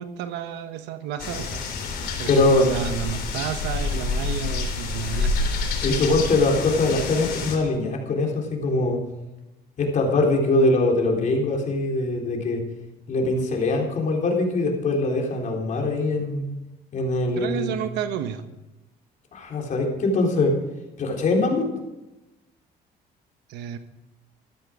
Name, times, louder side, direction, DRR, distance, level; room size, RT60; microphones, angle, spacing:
voice 1, 0.0-1.6 2.2-5.3 17.4-18.4 23.5-23.8, right 9 dB, 90° right, 10 dB, 1.2 m, -31 dB
sound 1, 1.2-7.6, left 3 dB, 65° left, 3.6 m, -28 dB
voice 2, 2.3-2.7 5.8-9.0 9.8-12.6 13.1-16.5 16.9-17.7 19.3-20.5 21.0-21.7, left 2 dB, 50° left, 0 dB, 3.8 m, -22 dB
14.0 x 12.5 x 5.0 m, 1.0 s
cardioid pair, 110°, 17 cm